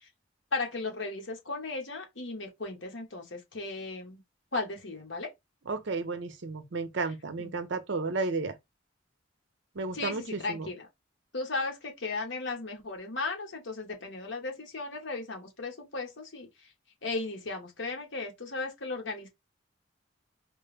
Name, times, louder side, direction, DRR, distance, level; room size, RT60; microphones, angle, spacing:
voice 1, 0.5-4.2 4.5-5.3 7.4-7.5 9.9-10.1 10.4-10.8 11.3-16.5 17.0-19.3, left 3 dB, 70° left, 1.3 m, -36 dB
voice 2, 5.7-8.6 9.7-10.7, right 3 dB, 65° right, 0.7 m, -33 dB
4.3 x 2.1 x 3.4 m
head